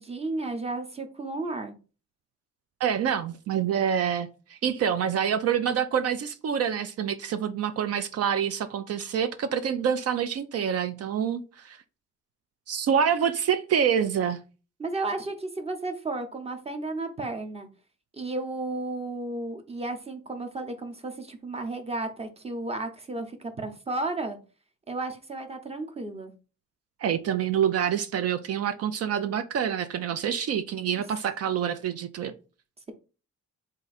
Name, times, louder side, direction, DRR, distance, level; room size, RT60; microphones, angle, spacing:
voice 1, 0.0-1.7 14.8-17.7 18.1-24.4 24.9-26.3, right 2 dB, 20° right, 0.8 m, -33 dB
voice 2, 2.8-11.8 12.7-14.4 27.0-32.3, right 8 dB, 55° right, 0.4 m, -27 dB
3.7 x 2.6 x 4.0 m
cardioid pair, 90°, 30 cm